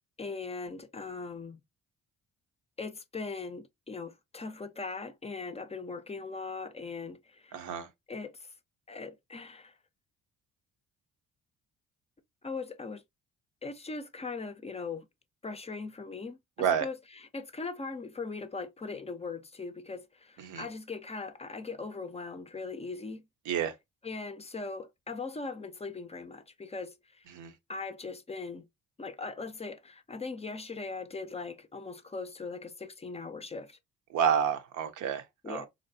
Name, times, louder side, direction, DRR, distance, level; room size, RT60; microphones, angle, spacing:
voice 1, 0.2-1.6 2.8-7.7 8.1-8.4 8.9-9.7 12.4-13.0 13.6-15.1 15.4-16.4 16.8-17.0 17.3-23.2 24.0-26.9 27.7-28.7 29.0-33.8 35.4-35.7, left 4 dB, 20° left, 0.4 m, -39 dB
voice 2, 7.5-7.9 16.6-16.9 20.4-20.7 23.4-23.8 27.3-27.5 34.1-35.6, right 8 dB, 80° right, 0.6 m, -30 dB
3.1 x 2.6 x 2.6 m
cardioid pair, 90°, 30 cm